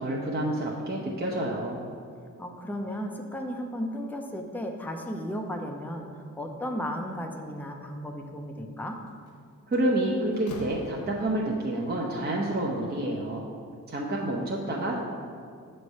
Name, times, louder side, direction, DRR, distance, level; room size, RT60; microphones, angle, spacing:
voice 1, 0.0-1.8 9.7-13.5 13.9-15.0, right 1 dB, 30° right, -3 dB, 0.8 m, -28 dB
voice 2, 2.4-9.0, equal, 5° left, 2 dB, 0.6 m, -35 dB
Slam, 9.1-9.3 9.7-11.6, left 2 dB, 65° left, 0.7 m, -44 dB
6.7 x 3.3 x 5.4 m, 2.3 s
cardioid pair, 60°, 34 cm